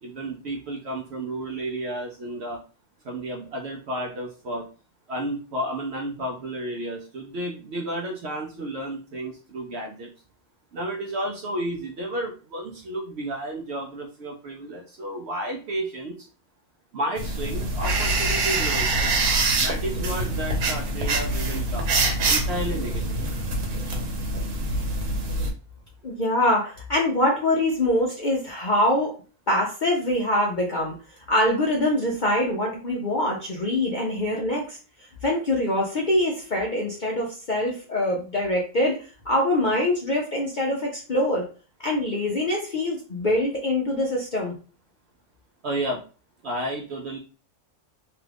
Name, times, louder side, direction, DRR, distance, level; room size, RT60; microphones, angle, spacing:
voice 1, 0.0-2.6 3.0-4.7 5.1-10.1 10.7-16.3 16.9-19.1 19.5-21.9 22.3-23.2 45.6-46.0 46.4-47.2, right 1 dB, 65° right, 1 dB, 0.7 m, -32 dB
sound 1, 17.2-25.5, right 2 dB, 90° right, 1.3 m, -25 dB
voice 2, 26.0-29.1 29.5-30.9 31.3-34.8 35.2-39.0 39.3-41.4 41.8-44.5, left 1 dB, 50° left, -2 dB, 0.5 m, -24 dB
2.9 x 2.4 x 3.3 m, 0.37 s
omnidirectional pair, 1.5 m